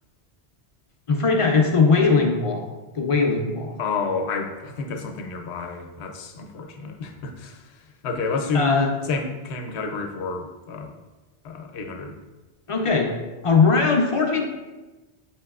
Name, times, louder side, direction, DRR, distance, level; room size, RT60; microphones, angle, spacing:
voice 1, 1.1-3.8 8.5-8.9 12.7-13.1 13.4-14.4, left 4 dB, 50° left, 1 dB, 0.4 m, -20 dB
voice 2, 3.8-7.6 8.0-8.8 9.1-10.9 11.4-12.1, left 4 dB, 80° left, 4 dB, 0.9 m, -29 dB
7.2 x 2.9 x 2.3 m, 1.2 s
omnidirectional pair, 1.1 m